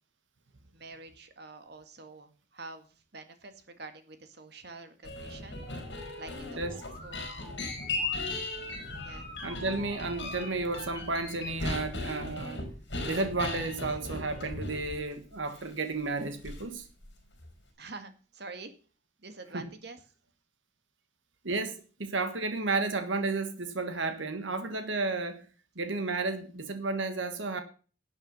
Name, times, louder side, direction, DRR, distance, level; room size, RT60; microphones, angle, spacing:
voice 1, 0.7-5.7 6.2-7.4 9.0-9.3 17.8-18.7 19.2-20.0, right 3 dB, 55° right, 2.0 m, -47 dB
sound 1, 5.0-15.1 15.5-15.6 16.4-16.8 17.0-17.5, left 2 dB, 65° left, 5.0 m, -37 dB
Musical instrument, 5.6-11.2, left 2 dB, 35° left, 4.4 m, -50 dB
voice 2, 9.4-12.6 13.0-16.9 19.5-19.7 21.4-25.4 25.7-27.6, right 3 dB, 80° right, 1.6 m, -32 dB
12.0 x 8.1 x 5.4 m
head